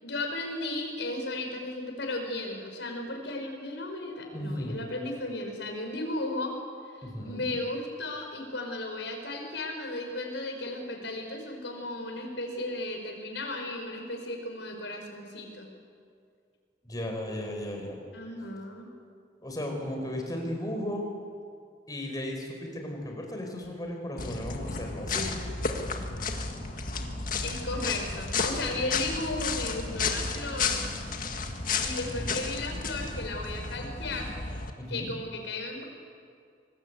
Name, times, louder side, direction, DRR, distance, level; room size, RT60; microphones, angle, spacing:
voice 1, 0.0-6.5 7.0-15.7 18.1-18.9 27.4-30.8 31.8-34.3 34.9-35.9, left 2 dB, 80° left, 3 dB, 5.3 m, -35 dB
voice 2, 4.3-4.8 7.0-7.4 16.9-18.0 19.4-21.0 21.9-25.3 32.1-32.5 34.8-35.1, left 1 dB, 20° left, 2 dB, 4.6 m, -35 dB
sound 1, 24.2-34.7, left 4 dB, 50° left, 2.0 m, -32 dB
26.0 x 20.5 x 8.2 m, 2.3 s
head